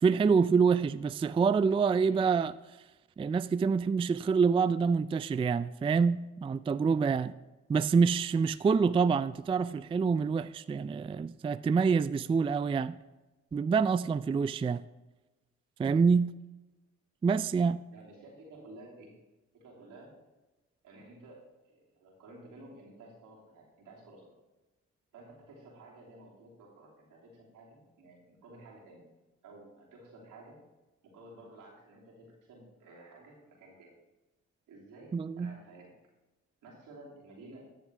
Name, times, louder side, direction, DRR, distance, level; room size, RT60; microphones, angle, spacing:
voice 1, 0.0-2.5 3.2-7.3 7.7-13.0 13.5-14.8 15.8-16.3 17.2-17.8 35.1-35.6, right 5 dB, 20° right, 0.3 m, -26 dB
voice 2, 17.9-19.1 19.5-20.2 20.8-24.3 25.1-29.0 29.4-30.6 31.0-33.9 34.7-35.9 36.6-37.6, right 2 dB, 80° right, 2.9 m, -53 dB
13.0 x 6.8 x 3.4 m
supercardioid pair, 50°, 32 cm